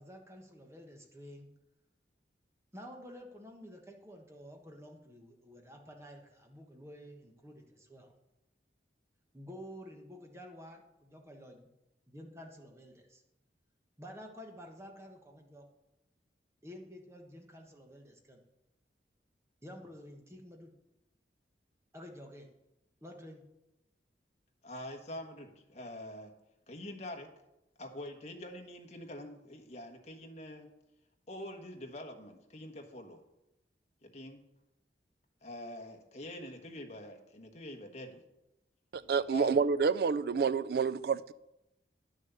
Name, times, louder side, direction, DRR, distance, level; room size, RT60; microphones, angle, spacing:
voice 1, 0.0-1.5 2.7-8.1 9.3-11.7 12.1-13.2 14.0-15.7 16.6-18.4 19.6-20.7 21.9-22.5 23.0-23.4, equal, 15° right, 1.3 m, -50 dB
voice 2, 24.6-26.3 26.7-27.3 27.8-30.7 31.3-33.2 34.0-34.4 35.4-38.2 39.3-39.6, left 1 dB, 40° left, 1.3 m, -45 dB
voice 3, 38.9-41.3, right 5 dB, 60° right, 0.4 m, -29 dB
10.5 x 6.4 x 6.8 m
head